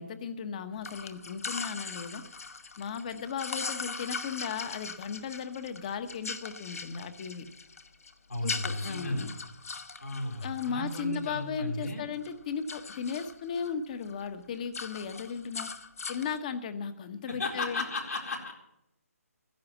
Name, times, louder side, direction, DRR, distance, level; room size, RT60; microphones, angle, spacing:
voice 1, 0.0-2.2 2.8-7.5 8.4-9.3 10.4-15.7 16.1-17.8, left 6 dB, 30° left, 11 dB, 1.1 m, -36 dB
sound 1, 0.8-11.9 12.2-13.7 14.0-14.3 14.5-16.4, left 4 dB, 65° left, 1.3 m, -40 dB
voice 2, 8.3-9.3 10.0-12.1 17.3-18.5, left 2 dB, 85° left, -3 dB, 4.4 m, -34 dB
14.5 x 10.5 x 7.3 m, 0.83 s
hypercardioid pair, 160°, 8 cm